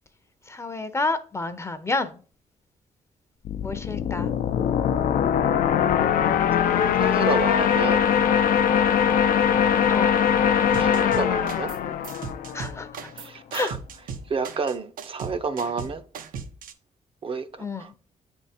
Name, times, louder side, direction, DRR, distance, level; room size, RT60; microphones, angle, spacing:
voice 1, 0.5-2.1 3.6-4.3 9.9-10.1 12.5-12.9 13.5-13.7 17.6-17.8, left 3 dB, 20° left, 0.5 m, -29 dB
sound 1, 3.5-13.0, left 8 dB, 90° left, 0.5 m, -22 dB
voice 2, 7.0-8.0 10.8-11.7 13.2-13.8 14.3-16.0 17.2-17.5 17.8-17.9, right 5 dB, 40° right, 0.5 m, -29 dB
sound 2, 10.7-11.8 12.0-16.7, right 5 dB, 90° right, 0.7 m, -37 dB
8.1 x 3.6 x 4.2 m
wide cardioid pair, 140°, 14 cm